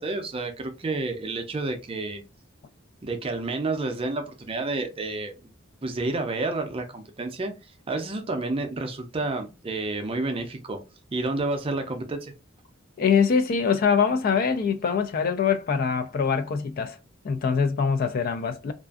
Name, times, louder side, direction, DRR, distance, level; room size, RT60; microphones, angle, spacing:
voice 1, 0.0-2.2 3.0-5.5 5.8-7.5 7.9-10.8 11.1-12.3, right 2 dB, 30° right, 0.5 m, -30 dB
voice 2, 13.0-17.0 17.2-18.7, left 6 dB, 45° left, 0.3 m, -23 dB
2.5 x 2.3 x 2.3 m
head